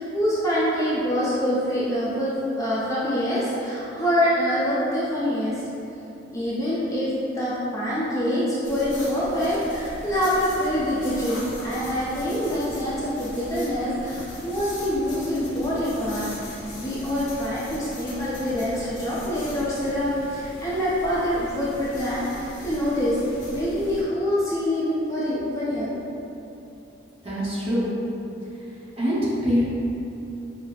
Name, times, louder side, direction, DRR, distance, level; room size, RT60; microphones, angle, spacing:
voice 1, 0.0-5.6 6.3-7.1 7.3-23.2 23.5-25.9, equal, 20° left, -10 dB, 0.5 m, -25 dB
sound 1, 8.6-24.0, left 1 dB, 80° left, 0.8 m, -39 dB
voice 2, 27.2-27.9 29.0-29.6, equal, 35° right, -10 dB, 1.1 m, -24 dB
5.6 x 2.1 x 2.3 m, 2.8 s
head